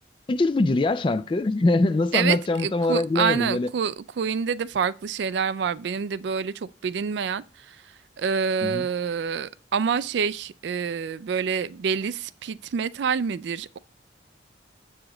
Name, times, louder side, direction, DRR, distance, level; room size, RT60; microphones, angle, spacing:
voice 1, 0.3-3.7 8.6-8.9, left 2 dB, 25° left, 0.3 m, -23 dB
voice 2, 2.1-13.8, right 6 dB, 65° right, 0.3 m, -27 dB
7.3 x 4.9 x 3.8 m
head